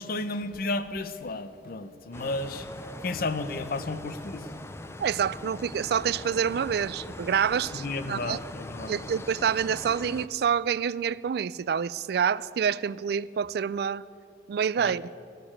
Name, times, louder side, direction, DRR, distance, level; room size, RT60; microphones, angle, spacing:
voice 1, 0.0-4.5 7.7-9.0 14.8-15.0, left 2 dB, 55° left, 12 dB, 0.7 m, -33 dB
sound 1, 2.1-10.3, left 1 dB, 15° left, 0.5 m, -41 dB
voice 2, 5.0-8.4 8.9-14.0 14.5-15.1, right 7 dB, 60° right, 20 dB, 0.3 m, -27 dB
15.0 x 6.7 x 9.9 m, 2.7 s
head